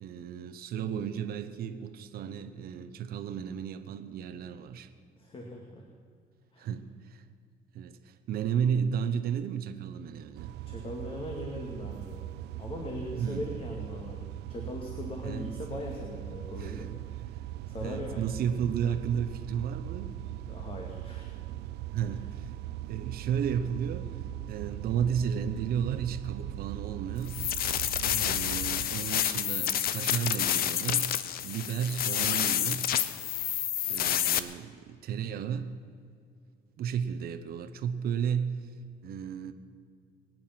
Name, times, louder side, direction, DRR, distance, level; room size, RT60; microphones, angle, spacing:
voice 1, 0.0-4.9 6.6-7.2 7.7-10.5 13.2-13.5 15.2-15.5 16.6-17.0 17.8-20.2 21.9-22.5 22.9-24.2 24.5-27.4 28.2-31.2 31.4-32.9 33.9-35.8 36.8-38.7 39.0-39.5, right 8 dB, 65° right, 8 dB, 1.0 m, -33 dB
voice 2, 5.2-5.9 6.5-6.7 10.6-12.2 12.6-14.2 14.5-17.3 17.7-18.2 20.5-21.3 28.0-28.4, left 1 dB, 35° left, 0 dB, 2.2 m, -40 dB
sound 1, 10.3-28.9, right 14 dB, 80° right, 0.5 m, -40 dB
sound 2, 27.3-34.4, left 10 dB, 65° left, 0.8 m, -29 dB
23.0 x 9.5 x 6.0 m, 2.2 s
cardioid pair, 110°, 17 cm